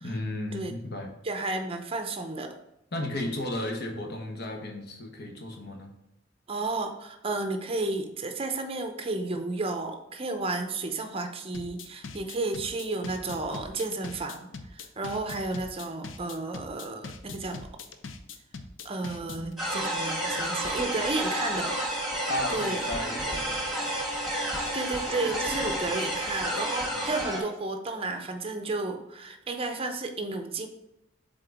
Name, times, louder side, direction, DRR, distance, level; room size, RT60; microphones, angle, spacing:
voice 1, 0.0-1.1 2.9-5.9 22.3-23.8 25.9-26.1 26.9-27.1, left 1 dB, 55° left, 3 dB, 1.1 m, -34 dB
voice 2, 1.2-2.5 6.5-17.7 18.8-21.8 22.5-22.8 24.7-30.7, right 3 dB, 30° right, 6 dB, 0.6 m, -32 dB
sound 1, 11.5-19.5, left 4 dB, 80° left, 0.6 m, -41 dB
sound 2, 19.6-27.4, right 1 dB, ahead, 1.5 m, -30 dB
7.5 x 3.8 x 3.5 m, 0.92 s
head